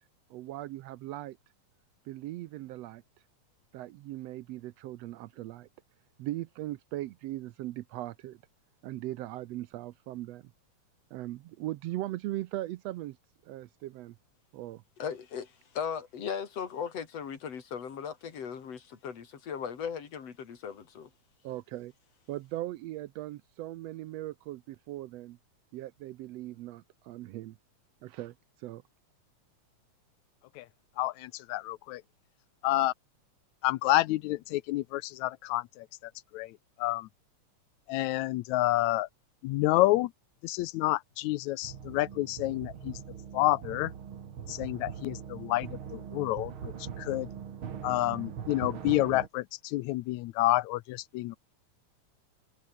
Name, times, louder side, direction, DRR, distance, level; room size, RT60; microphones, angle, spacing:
voice 1, 0.3-1.4 2.1-3.0 3.7-5.7 6.2-8.4 8.8-10.4 11.1-13.2 13.4-14.2 14.5-14.8 21.4-21.9 22.3-25.4 25.7-27.6 28.0-28.8, right 15 dB, 75° right, 1.6 m, -39 dB
voice 2, 15.0-21.1, left 7 dB, 55° left, 3.7 m, -37 dB
voice 3, 31.0-32.0 32.6-32.9 33.6-37.1 37.9-39.1 39.4-40.1 40.4-43.0 43.3-43.9 44.5-47.3 47.8-51.4, left 17 dB, 80° left, 1.9 m, -29 dB
sound 1, 41.6-49.3, right 8 dB, 50° right, 2.3 m, -41 dB
omnidirectional pair, 3.4 m